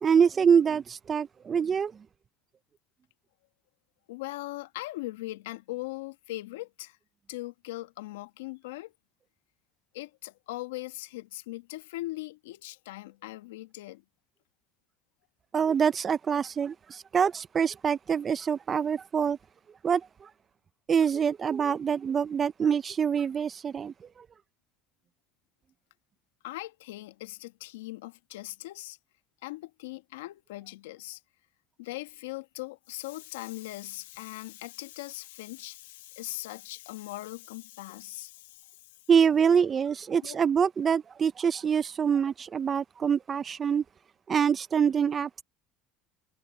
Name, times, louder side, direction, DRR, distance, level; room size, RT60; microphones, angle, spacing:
voice 1, 0.0-1.9 15.5-19.4 19.8-20.3 20.9-23.9 39.1-43.8 44.3-45.4, right 7 dB, 35° right, 0.7 m, -25 dB
voice 2, 4.1-7.0 7.3-8.9 9.9-14.0 26.4-29.0 29.4-31.2 31.8-38.7 40.2-40.4, left 18 dB, 85° left, 1.4 m, -40 dB
supercardioid pair, 90°, 0 cm